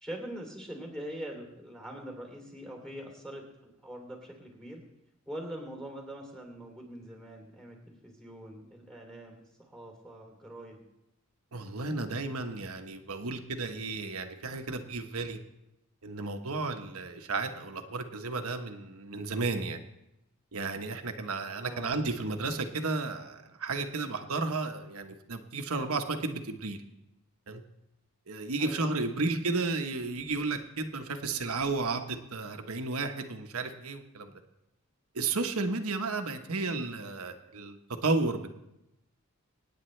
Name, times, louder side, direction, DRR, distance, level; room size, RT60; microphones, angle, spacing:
voice 1, 0.0-4.8 5.3-10.8 21.6-22.0 28.6-29.1, right 1 dB, ahead, 1 dB, 3.0 m, -43 dB
voice 2, 11.5-15.4 16.0-19.8 20.5-26.8 27.5-27.6 28.3-34.3 35.1-38.5, right 3 dB, 75° right, 6 dB, 1.2 m, -33 dB
25.5 x 9.6 x 3.3 m, 0.89 s
head